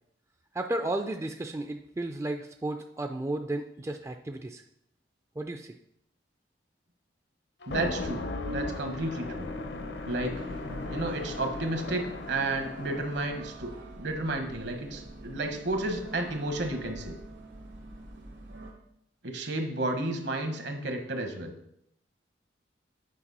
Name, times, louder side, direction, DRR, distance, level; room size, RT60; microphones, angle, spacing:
voice 1, 0.5-4.6 5.4-5.8, right 2 dB, 15° right, 5 dB, 0.3 m, -33 dB
sound 1, 7.6-13.2, left 2 dB, 65° left, 0.7 m, -36 dB
voice 2, 7.7-9.5 10.1-10.4 10.9-17.1 19.2-21.5, right 2 dB, 70° right, 5 dB, 1.2 m, -32 dB
sound 2, 10.3-18.7, right 2 dB, 90° right, 1.8 m, -46 dB
8.5 x 5.3 x 4.1 m, 0.76 s
head